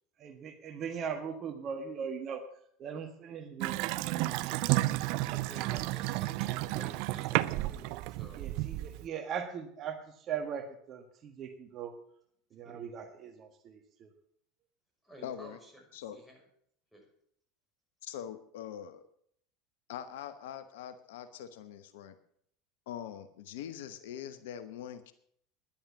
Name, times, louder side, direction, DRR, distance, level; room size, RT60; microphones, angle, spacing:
voice 1, 0.2-2.4 2.8-5.2 6.5-6.6 8.4-11.9 12.5-14.1, right 7 dB, 45° right, 6 dB, 1.5 m, -40 dB
Water tap faucet / Sink (filling or washing) / Bathtub (filling or washing), 3.6-9.1, right 17 dB, 60° right, 0.5 m, -32 dB
voice 2, 5.3-8.4 12.6-12.8 15.0-15.8 16.1-16.4 16.9-17.1, equal, ahead, 1 dB, 6.0 m, -53 dB
voice 3, 15.2-15.6 15.9-16.2 18.0-19.0 19.9-22.2 22.9-25.1, left 10 dB, 70° left, 12 dB, 0.9 m, -43 dB
10.5 x 10.5 x 7.2 m, 0.67 s
hypercardioid pair, 80°, 0 cm